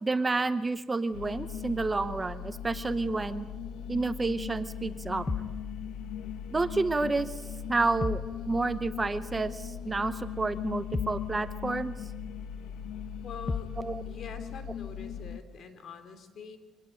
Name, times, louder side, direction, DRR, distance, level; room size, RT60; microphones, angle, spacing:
voice 1, 0.0-3.4 3.9-5.2 6.5-7.4 7.7-8.2 8.5-12.0 13.8-14.0, right 3 dB, 20° right, 12 dB, 0.8 m, -29 dB
sound 1, 1.1-15.4, left 8 dB, 75° left, 1.0 m, -39 dB
sound 2, 5.3-5.6 8.0-8.4 10.9-11.3 13.5-13.8, left 4 dB, 20° left, 0.8 m, -33 dB
voice 2, 13.2-13.7 14.0-16.6, left 6 dB, 50° left, 9 dB, 2.9 m, -44 dB
25.0 x 19.0 x 9.1 m, 1.3 s
cardioid pair, 130°, 0 cm